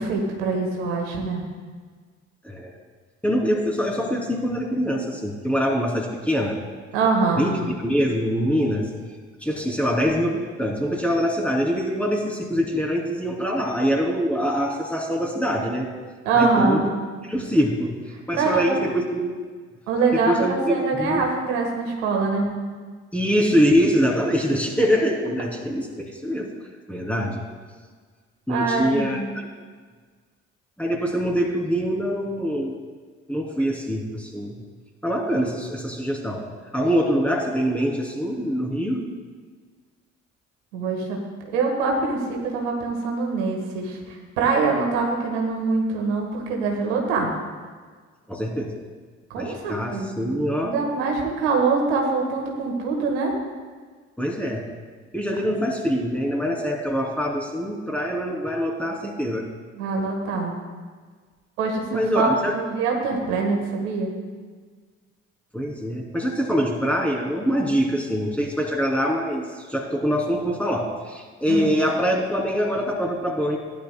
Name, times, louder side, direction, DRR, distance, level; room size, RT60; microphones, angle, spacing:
voice 1, 0.0-1.4 6.9-7.5 16.2-16.9 18.3-18.8 19.9-22.5 28.5-29.2 40.7-41.2 41.5-47.3 49.3-50.3 50.6-53.3 59.7-60.6 61.6-64.1 71.5-71.7, right 4 dB, 75° right, 0 dB, 1.6 m, -24 dB
voice 2, 3.2-6.6 7.4-8.9 9.4-15.9 16.3-16.9 17.2-17.9 18.3-19.3 20.1-21.3 23.1-26.5 26.9-27.4 28.5-29.5 30.8-32.7 33.3-34.5 35.0-36.4 36.7-39.1 48.3-48.7 49.3-50.7 54.2-54.6 55.1-59.5 61.9-62.5 65.5-73.6, equal, 5° left, -1 dB, 3.0 m, -24 dB
16.0 x 11.0 x 2.2 m, 1.5 s
figure-of-eight pair, 45°, 36 cm